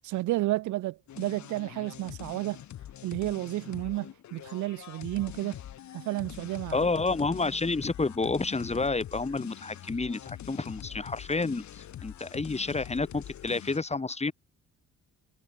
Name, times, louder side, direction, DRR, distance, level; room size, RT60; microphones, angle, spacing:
voice 1, 0.0-2.6 3.0-5.6 5.9-6.8, right 17 dB, 75° right, 0.6 m, -31 dB
sound 1, 1.1-13.8, left 11 dB, 70° left, 2.2 m, -44 dB
voice 2, 6.7-14.3, left 3 dB, 20° left, 3.2 m, -30 dB
sound 2, 6.8-13.6, left 5 dB, 35° left, 7.8 m, -59 dB
cardioid pair, 90°, 30 cm